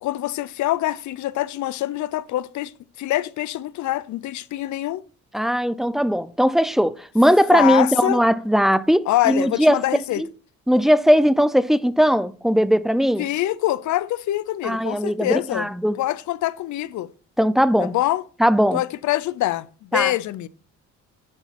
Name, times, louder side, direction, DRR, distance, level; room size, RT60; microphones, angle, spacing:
voice 1, 0.0-5.0 7.5-8.2 9.1-10.2 13.2-15.7 16.0-17.1 17.8-18.2 18.7-20.5, left 15 dB, 70° left, 0.6 m, -25 dB
voice 2, 5.3-9.8 10.2-10.3 10.7-13.3 14.6-16.0 17.4-17.9 18.4-18.8 19.9-20.1, equal, ahead, 0.5 m, -19 dB
11.0 x 4.3 x 4.2 m
cardioid pair, 90°, 30 cm